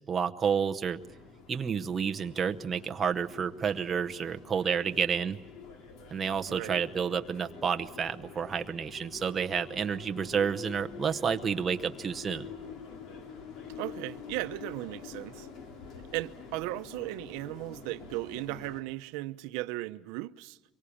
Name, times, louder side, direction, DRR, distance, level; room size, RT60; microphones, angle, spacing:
voice 1, 0.1-1.0 1.5-5.4 6.1-12.5, right 6 dB, 20° right, 0.9 m, -30 dB
sound 1, 1.0-18.8, left 6 dB, 55° left, 2.9 m, -47 dB
voice 2, 6.5-6.8 13.8-15.5 16.1-20.6, right 19 dB, 85° right, 0.8 m, -36 dB
24.5 x 23.5 x 8.6 m
cardioid pair, 165°, 0 cm